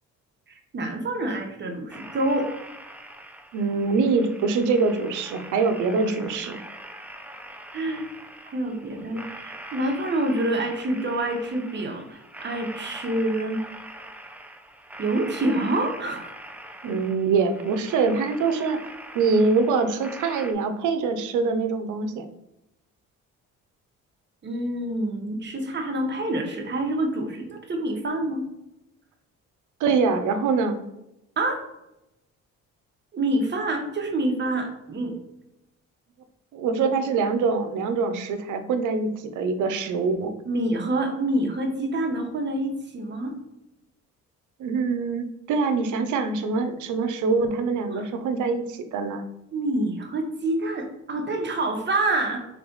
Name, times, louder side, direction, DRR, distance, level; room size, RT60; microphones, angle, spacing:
voice 1, 0.5-2.5 7.7-8.1 8.4-13.7 15.0-16.3 24.4-28.5 31.4-31.6 33.1-35.2 40.5-43.4 47.9-48.1 49.5-52.5, right 1 dB, 35° right, 3 dB, 1.0 m, -27 dB
sound 1, 1.9-20.5, right 1 dB, 5° right, 0.3 m, -42 dB
voice 2, 3.5-6.6 16.8-22.3 29.8-30.8 36.5-40.3 44.6-49.2, right 4 dB, 85° right, 9 dB, 0.6 m, -24 dB
3.4 x 3.3 x 3.9 m, 0.88 s
cardioid pair, 90°, 30 cm